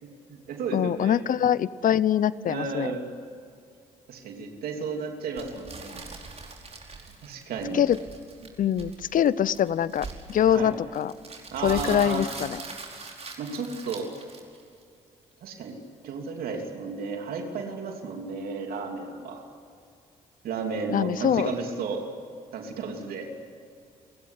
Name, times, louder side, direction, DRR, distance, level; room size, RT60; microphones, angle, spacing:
voice 1, 0.0-1.2 2.5-3.0 4.1-6.0 7.2-7.8 8.4-8.5 10.5-10.7 11.5-12.3 13.4-14.1 15.4-19.5 20.4-22.0 22.5-23.3, right 4 dB, 75° right, 3 dB, 3.1 m, -33 dB
voice 2, 0.7-2.9 7.7-8.0 8.6-11.1 11.6-12.6 20.9-21.5, left 10 dB, 60° left, 19 dB, 0.8 m, -24 dB
sound 1, 5.4-14.8, right 4 dB, 45° right, 4.9 m, -42 dB
30.0 x 16.5 x 9.8 m, 2.3 s
supercardioid pair, 55°, 15 cm